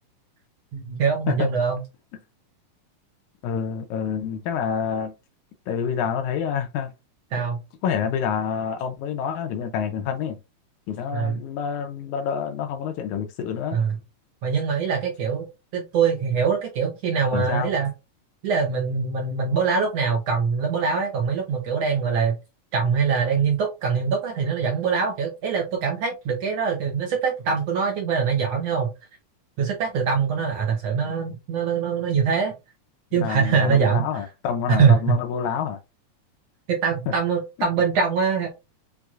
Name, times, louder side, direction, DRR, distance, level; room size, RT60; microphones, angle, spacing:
voice 1, 0.7-1.8 7.3-7.6 11.1-11.4 13.7-13.9 14.4-15.5 15.7-17.9 18.4-22.4 22.7-28.9 29.6-32.5 33.1-34.0 34.7-35.2 36.7-38.5, right 6 dB, 70° right, 1.6 m, -23 dB
voice 2, 3.4-5.1 5.7-6.9 7.8-10.4 10.9-13.8 17.3-17.7 33.1-35.8 37.1-37.2, left 7 dB, 80° left, 1.8 m, -27 dB
6.0 x 2.8 x 2.4 m
omnidirectional pair, 3.7 m